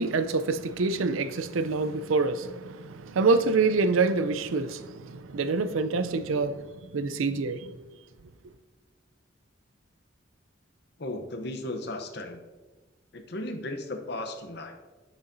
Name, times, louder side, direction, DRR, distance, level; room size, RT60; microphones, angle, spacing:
voice 1, 0.0-6.6 6.9-7.7, right 3 dB, 90° right, 0.5 m, -26 dB
voice 2, 11.0-12.4 13.1-14.8, left 1 dB, 55° left, 0.8 m, -35 dB
9.1 x 6.8 x 2.6 m
head